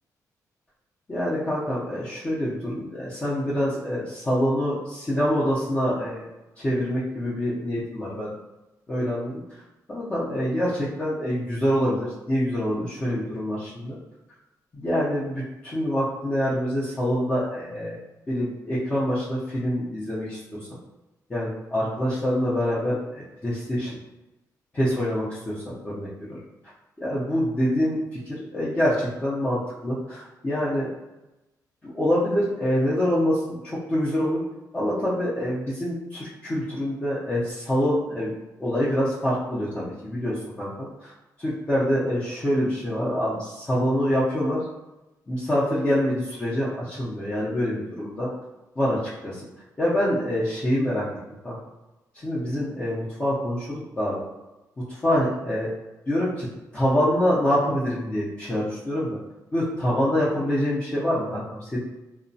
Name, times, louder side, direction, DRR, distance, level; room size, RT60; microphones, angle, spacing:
voice 1, 1.1-6.2 6.6-8.3 8.9-9.4 9.9-14.0 14.7-18.0 18.3-20.6 21.3-24.0 24.7-26.4 27.0-30.9 31.8-34.4 34.7-38.3 38.6-41.1 41.4-44.7 45.3-48.3 48.8-49.3 49.8-51.1 51.4-51.6 52.1-54.2 54.8-55.7 56.1-56.5 56.7-59.2 59.5-61.8, equal, 20° left, -9 dB, 0.5 m, -25 dB
2.9 x 2.1 x 2.6 m, 1.0 s
wide cardioid pair, 165°, 7 cm